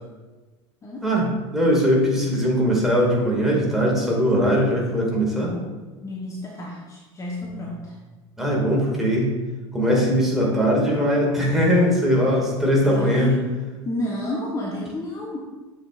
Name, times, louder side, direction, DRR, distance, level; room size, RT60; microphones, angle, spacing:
voice 1, 1.0-5.6 8.4-9.3 9.7-13.3, equal, ahead, -4 dB, 2.1 m, -20 dB
voice 2, 6.0-8.0 12.8-13.5 13.8-15.4, left 1 dB, 20° left, -3 dB, 1.0 m, -30 dB
7.2 x 6.5 x 2.5 m, 1.3 s
figure-of-eight pair, 75°, 15 cm